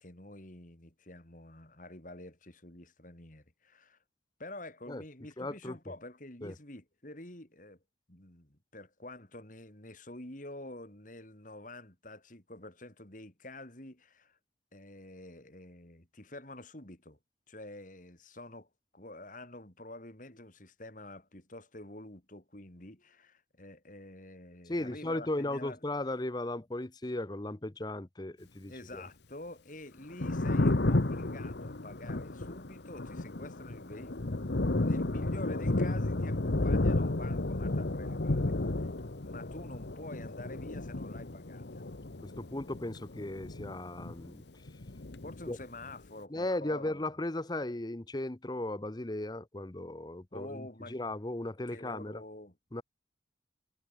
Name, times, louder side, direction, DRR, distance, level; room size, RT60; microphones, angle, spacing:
voice 1, 0.0-4.0 4.4-7.8 8.1-14.4 14.7-17.2 17.5-25.8 28.7-34.4 34.7-38.5 38.8-38.9 39.2-41.8 45.2-47.1 50.3-51.0 51.7-52.6, left 1 dB, 45° left, 3.6 m, -48 dB
voice 2, 5.4-5.8 6.4-6.5 24.7-29.0 42.2-44.4 45.5-45.6 46.3-52.2 52.7-52.8, left 1 dB, 20° left, 0.8 m, -36 dB
Thunder, 30.0-44.4 44.7-45.9, left 2 dB, 65° left, 1.1 m, -32 dB
head